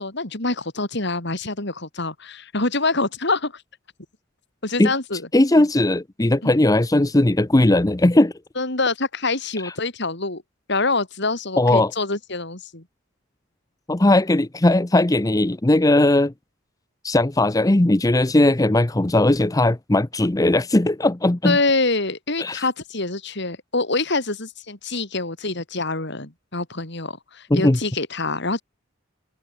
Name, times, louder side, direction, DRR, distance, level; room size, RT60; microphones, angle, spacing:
voice 1, 0.0-3.6 4.6-5.3 5.6-5.7 6.4-6.6 8.6-10.4 10.7-12.8 21.4-28.6, left 3 dB, 60° left, 4.2 m, -25 dB
voice 2, 5.3-8.3 9.6-9.7 11.6-11.9 13.9-16.3 17.0-21.6 22.4-22.6 27.5-27.8, left 1 dB, 15° left, 0.7 m, -18 dB
head